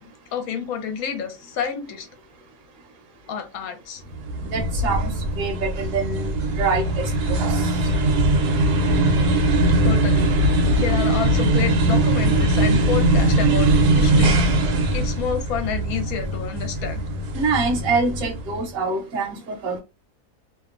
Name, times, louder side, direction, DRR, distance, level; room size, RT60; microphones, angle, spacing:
voice 1, 0.3-2.1 3.3-4.0 9.8-10.2 10.8-14.5 14.9-17.0, left 7 dB, 70° left, 1.0 m, -29 dB
sound 1, 4.1-18.6, right 1 dB, 85° right, 1.2 m, -20 dB
voice 2, 4.5-6.3 6.6-7.1 7.5-7.7 17.3-19.8, right 4 dB, 65° right, 1.1 m, -25 dB
2.8 x 2.1 x 2.4 m
omnidirectional pair, 1.7 m